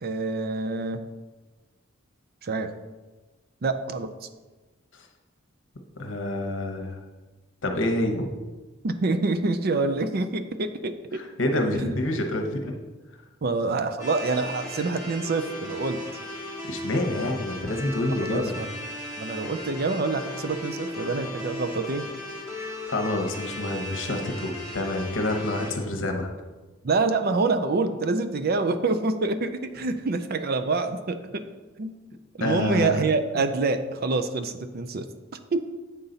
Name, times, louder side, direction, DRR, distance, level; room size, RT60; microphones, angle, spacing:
voice 1, 0.0-1.1 2.4-2.7 3.6-4.1 8.8-11.2 11.7-12.0 13.4-16.0 18.1-18.7 19.2-22.1 26.8-31.4 31.8-31.9 32.4-35.1 35.5-35.6, right 3 dB, 50° right, 9 dB, 0.5 m, -26 dB
voice 2, 6.0-7.0 7.6-8.3 11.1-12.8 16.6-18.5 22.6-26.3 32.4-33.1, left 1 dB, 65° left, 4 dB, 1.0 m, -27 dB
sound 1, 14.0-25.7, left 1 dB, 20° right, 1.5 m, -36 dB
8.3 x 5.6 x 3.9 m, 1.3 s
head